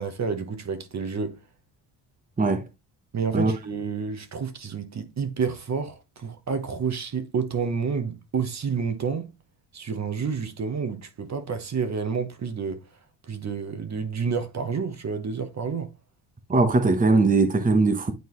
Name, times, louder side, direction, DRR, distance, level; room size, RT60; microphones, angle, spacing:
voice 1, 0.0-1.4 3.1-9.3 9.7-12.8 13.2-15.9, right 5 dB, 40° right, 1.2 m, -29 dB
voice 2, 16.5-18.1, right 3 dB, 20° right, 1.0 m, -20 dB
9.4 x 3.9 x 3.1 m
cardioid pair, 95°, 42 cm